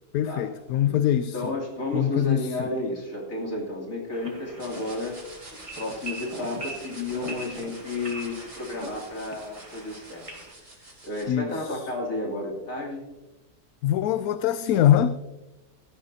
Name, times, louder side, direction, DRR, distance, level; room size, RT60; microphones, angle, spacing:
voice 1, 0.1-1.5 1.9-2.7 11.3-11.9 13.8-15.2, left 11 dB, 85° left, 1.0 m, -23 dB
voice 2, 1.3-5.2 5.8-10.5 11.0-13.0, left 2 dB, 65° left, 3.4 m, -32 dB
sound 1, 4.1-10.5, right 2 dB, 20° right, 2.0 m, -41 dB
sound 2, 4.6-11.2, right 2 dB, 40° right, 3.1 m, -48 dB
17.0 x 13.0 x 2.8 m
omnidirectional pair, 1.5 m